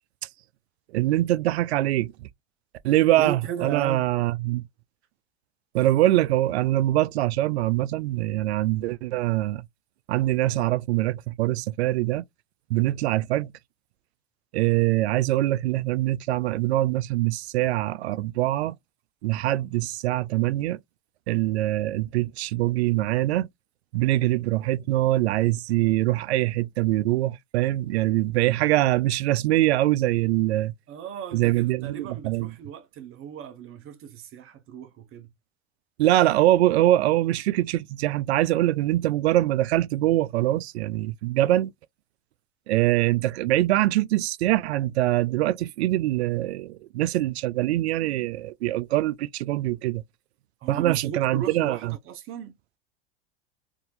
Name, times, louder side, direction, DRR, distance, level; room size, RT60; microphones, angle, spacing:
voice 1, 0.9-2.1 2.8-4.6 5.7-9.6 10.1-12.2 12.7-13.5 14.5-18.8 19.2-20.8 21.3-23.5 23.9-30.7 31.3-32.5 36.0-41.7 42.7-50.0 50.7-51.8, right 15 dB, 80° right, 0.5 m, -23 dB
voice 2, 3.2-4.1 30.9-35.3 50.6-52.6, right 8 dB, 40° right, 0.7 m, -36 dB
3.8 x 2.6 x 2.4 m
hypercardioid pair, 90°, 32 cm